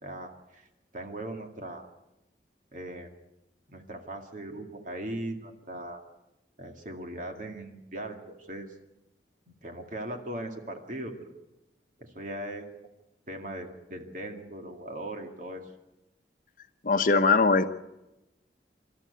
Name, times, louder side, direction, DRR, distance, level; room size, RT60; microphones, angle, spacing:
voice 1, 0.0-0.7 0.9-1.9 2.7-3.1 3.7-6.0 6.6-8.7 9.6-11.3 12.0-12.7 13.3-15.7, right 1 dB, 45° right, 3 dB, 2.2 m, -39 dB
voice 2, 16.8-17.7, left 4 dB, 50° left, 9 dB, 1.0 m, -21 dB
26.0 x 13.5 x 8.2 m, 0.95 s
head